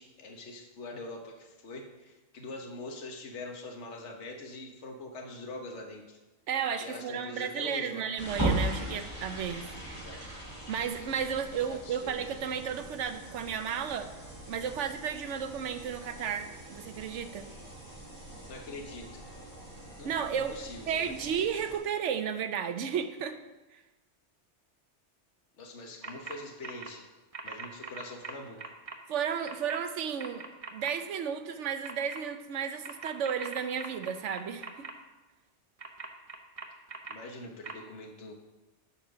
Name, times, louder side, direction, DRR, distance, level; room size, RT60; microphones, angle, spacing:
voice 1, 0.0-6.2 6.8-8.1 9.9-10.2 11.5-12.3 18.5-19.4 20.0-21.4 25.6-27.1 27.4-28.7 37.1-38.4, left 2 dB, 75° left, 2 dB, 1.4 m, -44 dB
voice 2, 6.5-9.7 10.7-14.1 14.5-17.5 20.0-20.5 20.9-23.3 23.7-23.8 29.1-30.4 30.7-34.7, right 7 dB, 85° right, 9 dB, 1.1 m, -33 dB
sound 1, 8.2-21.8, right 1 dB, 15° right, 3.0 m, -39 dB
sound 2, 26.0-26.4 26.6-26.9 27.3-29.0 29.5-29.8 30.2-30.9 31.8-32.2 32.8-34.9 35.8-37.1 37.6-37.7, right 4 dB, 35° right, 0.7 m, -41 dB
10.5 x 4.4 x 6.2 m, 1.1 s
omnidirectional pair, 1.2 m